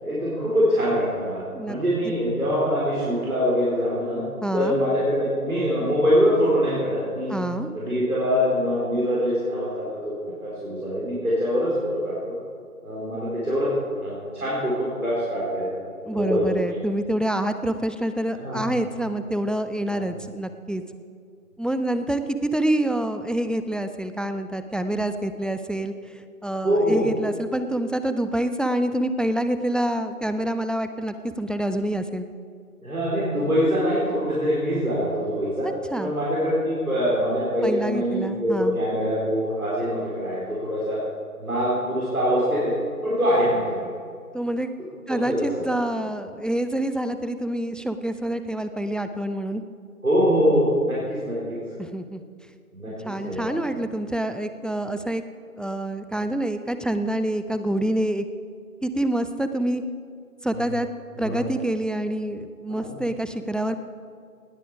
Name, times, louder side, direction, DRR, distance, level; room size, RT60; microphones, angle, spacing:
voice 1, 0.0-4.2 4.5-7.4 7.7-12.3 12.8-13.7 14.0-15.7 16.1-16.5 18.4-18.6 19.9-20.0 26.6-27.0 32.8-35.7 36.0-41.0 41.4-42.7 43.0-43.9 45.1-45.6 50.0-51.6 52.7-53.5 60.5-60.6 61.2-61.4 62.7-62.9, equal, 70° right, -8 dB, 4.4 m, -24 dB
voice 2, 4.4-4.8 7.3-7.7 16.1-20.8 21.6-32.3 35.6-36.1 37.6-38.8 44.3-44.7 45.1-49.6 51.8-52.2 52.9-55.2 55.6-58.3 58.8-59.8 60.4-60.9 61.2-63.8, right 1 dB, ahead, 10 dB, 0.4 m, -27 dB
19.0 x 8.6 x 4.9 m, 2.2 s
figure-of-eight pair, 165°, 45 cm